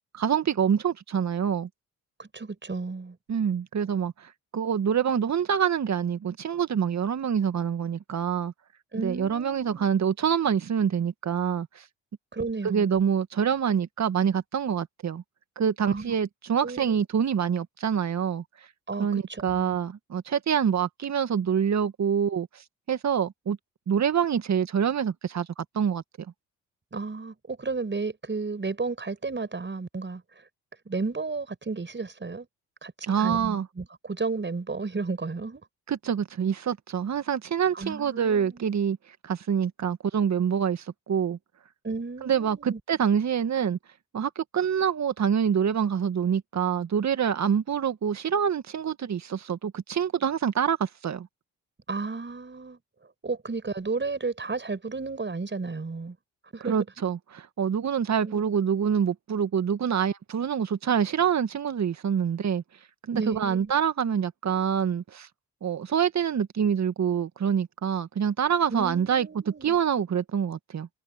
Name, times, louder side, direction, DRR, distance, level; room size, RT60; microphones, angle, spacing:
voice 1, 0.1-1.7 3.3-8.5 9.0-11.8 12.6-15.2 15.6-18.4 19.0-23.6 23.9-26.0 33.0-33.7 35.9-39.0 39.2-41.4 42.2-43.8 44.1-51.3 56.7-62.6 63.1-65.3 65.6-70.9, right 7 dB, 50° right, 2.0 m, -26 dB
voice 2, 2.2-3.2 8.9-9.9 12.3-13.0 15.8-16.2 16.6-17.0 18.9-19.8 26.9-30.2 30.9-32.5 32.8-32.9 33.2-35.6 37.7-38.6 41.8-42.8 51.9-52.8 53.2-56.2 56.5-56.8 58.2-58.5 63.1-63.7 68.7-69.8, right 4 dB, 30° right, 6.3 m, -33 dB
hypercardioid pair, 50°, 36 cm